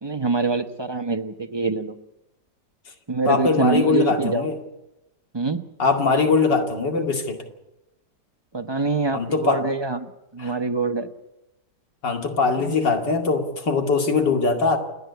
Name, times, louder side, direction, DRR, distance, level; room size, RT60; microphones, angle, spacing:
voice 1, 0.0-2.0 3.1-4.5 5.3-5.6 8.5-10.1 10.3-11.1 12.6-12.8, right 3 dB, 20° right, 7 dB, 0.7 m, -25 dB
voice 2, 3.3-4.6 5.8-7.4 9.1-9.6 10.4-10.5 12.0-14.8, left 4 dB, 80° left, 3 dB, 3.1 m, -21 dB
29.0 x 10.0 x 9.5 m, 0.93 s
omnidirectional pair, 1.9 m